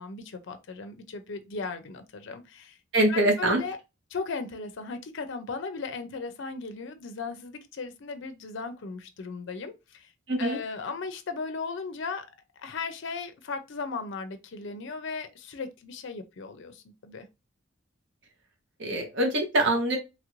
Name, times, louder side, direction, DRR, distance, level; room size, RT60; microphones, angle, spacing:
voice 1, 0.0-2.8 3.1-3.8 4.1-10.1 10.4-12.2 12.6-17.3, left 4 dB, 55° left, 0.5 m, -36 dB
voice 2, 2.9-3.6 10.3-10.6 18.8-20.0, right 1 dB, 55° right, 0.9 m, -24 dB
3.0 x 2.5 x 2.9 m
head